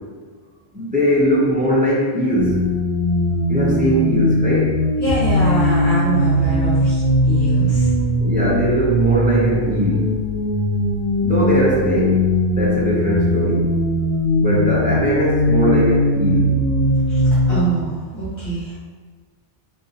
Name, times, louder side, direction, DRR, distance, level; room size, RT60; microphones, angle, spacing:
voice 1, 0.7-2.6 3.5-4.7 8.2-10.1 11.2-12.2 12.5-13.6 14.4-16.5, right 1 dB, 10° right, -7 dB, 0.6 m, -20 dB
sound 1, 2.3-17.6, left 1 dB, 80° left, 1.0 m, -19 dB
voice 2, 5.0-8.0 17.1-17.2 17.5-18.8, right 2 dB, 50° left, -12 dB, 1.2 m, -24 dB
3.7 x 2.6 x 2.8 m, 1.5 s
omnidirectional pair, 1.2 m